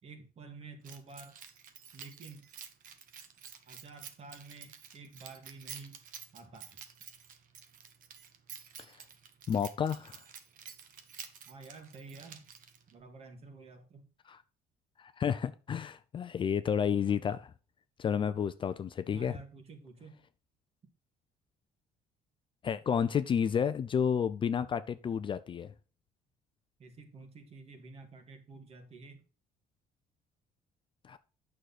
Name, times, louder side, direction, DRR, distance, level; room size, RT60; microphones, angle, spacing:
voice 1, 0.0-1.4 1.9-2.5 3.7-6.0 6.3-6.9 11.5-12.5 12.9-14.1 19.1-20.2 26.8-29.2, right 4 dB, 40° right, 2.0 m, -50 dB
Keys jangling, 0.8-13.0, right 8 dB, 55° right, 1.3 m, -50 dB
voice 2, 9.5-10.2 14.3-14.4 15.0-17.5 18.0-19.3 22.6-25.7 31.0-31.2, left 7 dB, 30° left, 0.5 m, -31 dB
9.2 x 6.4 x 4.2 m
cardioid pair, 145°, 16 cm